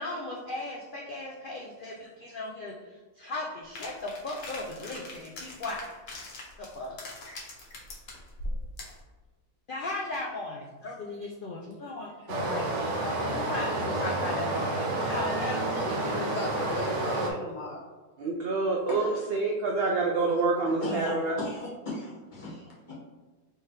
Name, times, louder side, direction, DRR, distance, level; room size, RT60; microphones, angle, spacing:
voice 1, 0.0-6.3 6.6-7.0 7.2-7.4 9.7-12.7 13.0-16.3, left 2 dB, 85° left, -2 dB, 0.4 m, -37 dB
sound 1, 3.7-9.0, left 1 dB, 60° left, 1.2 m, -41 dB
Stream, 12.3-17.3, right 2 dB, 60° right, 1.0 m, -30 dB
voice 2, 15.8-17.8 18.9-19.2 20.7-22.9, left 1 dB, 30° left, -7 dB, 1.5 m, -36 dB
voice 3, 18.2-21.4, right 3 dB, 85° right, 0 dB, 0.5 m, -27 dB
4.5 x 3.4 x 3.2 m, 1.3 s
omnidirectional pair, 1.6 m